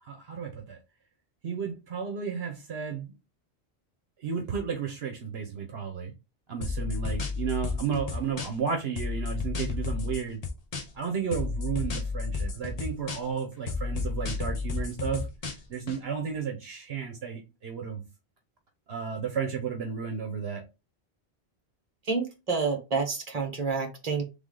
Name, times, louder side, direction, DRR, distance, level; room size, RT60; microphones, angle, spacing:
voice 1, 0.0-0.8 1.4-3.1 4.2-6.1 6.5-10.4 10.9-15.3 15.7-18.0 18.9-20.6, right 6 dB, 70° right, 1.1 m, -33 dB
sound 1, 6.6-8.7 9.0-11.0 11.3-13.4 13.7-16.0, left 4 dB, 40° left, 0.7 m, -32 dB
voice 2, 22.1-24.2, right 4 dB, 35° right, 1.3 m, -29 dB
3.5 x 3.5 x 3.7 m
omnidirectional pair, 1.1 m